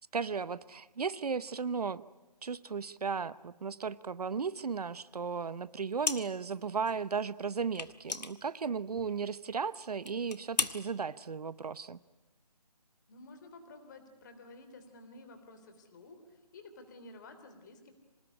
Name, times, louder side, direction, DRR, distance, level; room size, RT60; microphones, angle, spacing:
voice 1, 0.1-2.0 2.4-12.0, right 5 dB, 65° right, 18 dB, 0.8 m, -35 dB
sound 1, 6.0-6.6 6.8-7.0 7.7-9.2 9.5-9.6 10.0-10.8, left 4 dB, 85° left, 1.8 m, -35 dB
voice 2, 13.1-17.9, left 2 dB, 30° left, 8 dB, 3.2 m, -52 dB
26.0 x 19.5 x 9.8 m, 1.1 s
hypercardioid pair, 165°, 21 cm